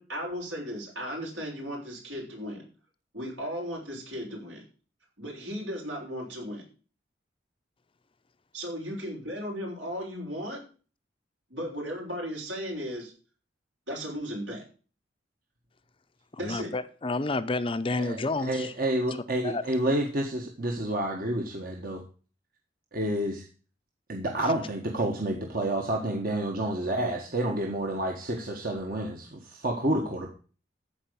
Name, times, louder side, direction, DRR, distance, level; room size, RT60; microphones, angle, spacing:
voice 1, 0.0-2.6 3.1-4.6 5.2-6.6 8.5-10.6 11.5-13.1 13.9-14.6 16.4-16.7, equal, 80° right, 6.2 m, -36 dB
voice 2, 16.4-18.6 19.4-19.6, left 2 dB, 30° left, 0.6 m, -29 dB
voice 3, 17.9-22.0 22.9-23.4 24.1-30.3, right 1 dB, 50° right, 1.6 m, -29 dB
14.5 x 5.0 x 6.9 m
head